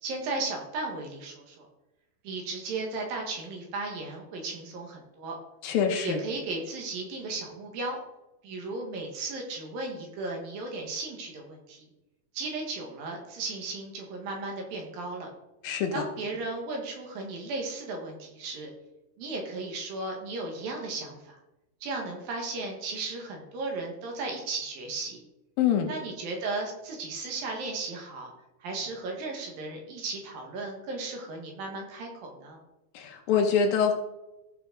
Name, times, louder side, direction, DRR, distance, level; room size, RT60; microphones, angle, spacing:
voice 1, 0.0-1.7 2.2-5.3 6.0-8.0 8.4-11.9 12.3-15.3 15.9-18.7 19.2-21.4 21.8-25.2 25.9-28.3 28.6-32.6, right 3 dB, 65° right, 1 dB, 3.2 m, -35 dB
voice 2, 5.6-6.2 15.6-16.1 25.6-25.9 32.9-33.9, left 7 dB, 70° left, 3 dB, 2.5 m, -25 dB
14.5 x 6.0 x 3.9 m, 0.97 s
omnidirectional pair, 4.6 m